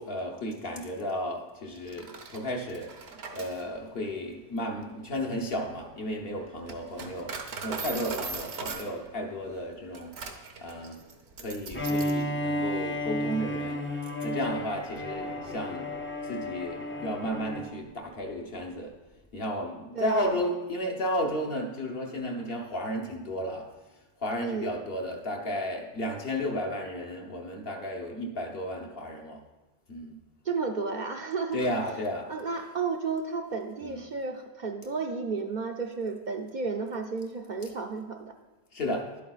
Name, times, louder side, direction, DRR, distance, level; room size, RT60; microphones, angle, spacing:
voice 1, 0.0-2.9 3.3-7.4 7.6-10.1 10.6-11.0 11.4-13.8 14.2-15.9 16.2-18.9 19.3-23.7 24.2-29.4 29.9-30.1 31.5-32.3 33.8-34.0 38.7-39.1, left 1 dB, 65° left, 1 dB, 1.2 m, -33 dB
Coin (dropping), 1.8-12.3, right 4 dB, 80° right, 1.1 m, -41 dB
Bowed string instrument, 11.7-17.8, left 1 dB, 15° left, 0.4 m, -32 dB
voice 2, 19.9-20.4 24.4-24.8 30.4-31.6 32.3-38.3, right 4 dB, 55° right, 3 dB, 0.6 m, -32 dB
11.0 x 8.4 x 2.4 m, 1.2 s
omnidirectional pair, 1.1 m